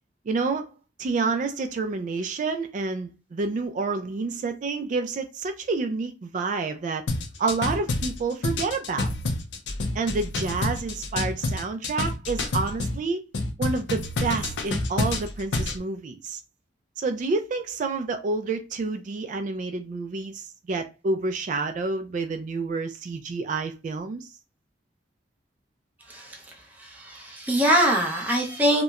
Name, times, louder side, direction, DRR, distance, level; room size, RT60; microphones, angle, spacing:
voice 1, 0.3-0.7 1.0-7.0 7.4-9.1 9.9-13.2 13.6-16.4 17.0-24.3, right 3 dB, 45° right, 0.3 m, -29 dB
sound 1, 7.1-13.0 13.3-15.8, left 2 dB, 85° left, 0.5 m, -28 dB
voice 2, 26.0-28.8, right 1 dB, 10° right, 0.6 m, -24 dB
2.9 x 2.1 x 2.3 m
head